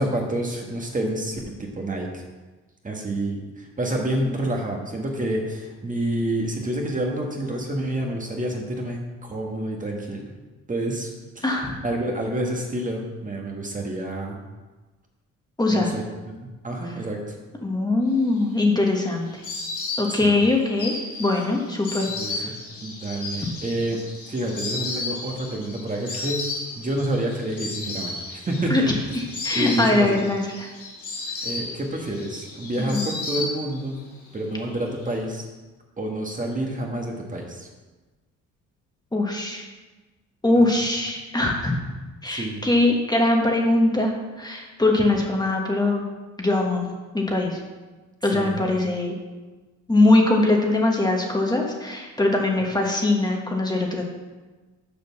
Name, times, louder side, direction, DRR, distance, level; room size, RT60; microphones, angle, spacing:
voice 1, 0.0-2.2 2.8-10.3 10.7-11.1 11.3-11.4 11.8-14.4 15.7-16.0 16.4-17.4 20.1-20.4 22.1-22.5 22.8-24.0 24.3-26.4 26.8-28.9 29.5-30.2 31.4-34.0 34.3-35.5 36.0-37.7 40.6-40.7 42.3-42.6 48.3-48.6, right 1 dB, 25° right, 0 dB, 1.5 m, -28 dB
voice 2, 11.4-11.8 15.6-15.9 17.6-19.3 20.0-22.5 28.7-28.8 29.4-30.7 32.8-33.0 39.1-39.6 40.4-41.7 42.2-46.1 46.4-46.9 47.1-47.6 48.2-49.1 49.9-54.0, left 2 dB, 15° left, 0 dB, 1.5 m, -22 dB
Insect, 18.3-34.0 34.3-35.1, left 3 dB, 75° left, 2.7 m, -34 dB
6.9 x 5.1 x 6.8 m, 1.2 s
cardioid pair, 90°, 30 cm